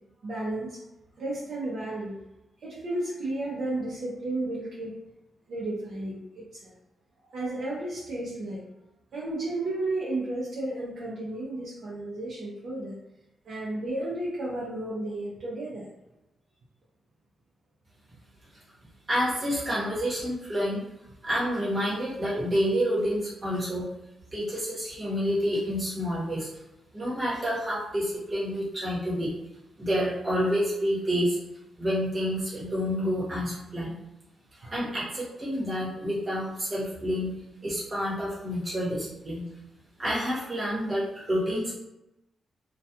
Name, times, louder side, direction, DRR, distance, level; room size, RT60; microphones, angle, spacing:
voice 1, 0.2-0.8 1.2-2.2 2.6-5.0 5.5-6.7 7.3-8.6 9.1-13.0 13.4-15.9, right 2 dB, 60° right, -6 dB, 0.6 m, -33 dB
voice 2, 19.1-20.8 21.2-23.9 24.3-26.5 26.9-29.3 29.8-31.4 31.8-34.0 34.6-37.3 37.6-39.4 40.0-41.7, equal, 25° right, -8 dB, 1.0 m, -28 dB
2.2 x 2.2 x 2.7 m, 0.93 s
wide cardioid pair, 150°, 0 cm